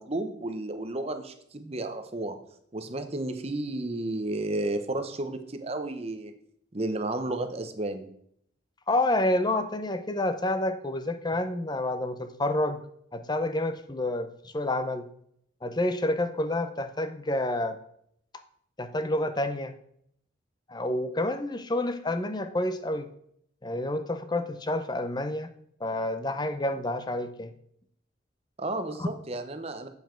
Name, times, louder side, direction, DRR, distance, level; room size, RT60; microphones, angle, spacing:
voice 1, 0.0-2.4 2.7-6.3 6.7-8.1 28.6-29.9, right 2 dB, 30° right, 7 dB, 0.8 m, -32 dB
voice 2, 8.9-12.8 13.1-15.1 15.6-17.8 18.8-19.7 20.7-23.1 23.6-25.5 25.8-27.5 29.0-29.1, left 1 dB, 20° left, 10 dB, 0.6 m, -29 dB
8.0 x 7.0 x 4.5 m, 0.69 s
head